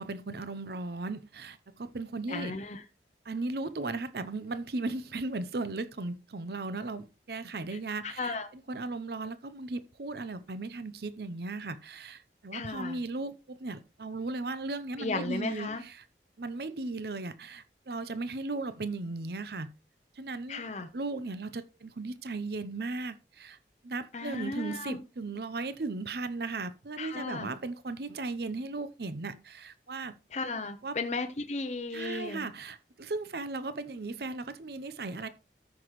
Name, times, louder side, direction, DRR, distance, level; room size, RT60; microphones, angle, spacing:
voice 1, 0.0-2.5 3.2-16.1 16.4-19.7 20.1-20.6 20.9-23.6 23.8-30.1 30.8-31.0 31.9-35.3, right 3 dB, 65° right, 0.7 m, -36 dB
voice 2, 2.3-2.8 8.0-8.5 12.5-13.0 15.0-15.8 20.5-20.9 24.1-25.0 27.0-27.5 30.3-32.4, left 3 dB, 40° left, 0.7 m, -35 dB
14.0 x 6.0 x 3.1 m
head